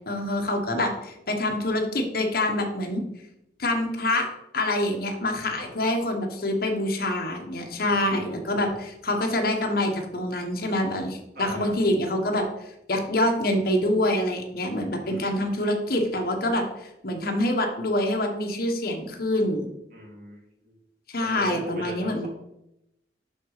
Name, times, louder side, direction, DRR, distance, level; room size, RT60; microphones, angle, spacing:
voice 1, 0.1-3.0 3.6-4.3 4.5-19.7 21.1-22.3, left 1 dB, 55° left, 3 dB, 1.4 m, -26 dB
voice 2, 7.8-8.5 11.3-11.8 15.0-15.4 19.9-20.8 21.2-22.3, right 1 dB, 55° right, -1 dB, 2.6 m, -39 dB
11.5 x 4.1 x 5.0 m, 0.85 s
head